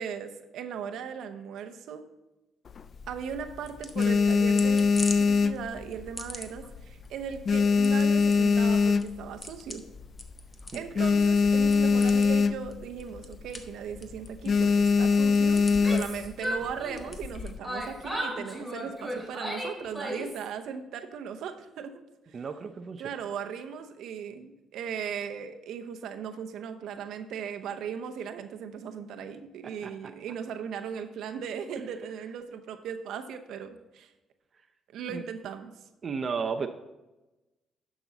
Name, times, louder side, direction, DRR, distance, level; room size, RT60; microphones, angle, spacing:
voice 1, 0.0-2.1 3.1-4.9 5.2-9.8 10.7-21.9 22.3-22.4 23.0-34.1 34.9-35.7, right 7 dB, 80° right, 7 dB, 0.8 m, -38 dB
sound 1, 2.7-3.4 3.8-6.3 6.6-6.9 7.2-9.5 9.9-10.0 10.2-10.3 10.7-12.9 13.2-13.4 13.7-14.0 14.5-16.3 17.0-17.6, left 5 dB, 50° left, 0.3 m, -23 dB
sound 2, 2.9-18.1, left 2 dB, 25° left, 1.0 m, -45 dB
voice 2, 10.7-11.1 22.3-23.3 29.6-30.1 35.1-35.2 36.0-36.7, right 5 dB, 45° right, 7 dB, 0.5 m, -35 dB
Yell, 15.7-17.3 17.6-20.5, equal, 10° left, 2.9 m, -35 dB
11.0 x 6.1 x 4.0 m, 1.0 s
cardioid pair, 90°, 0 cm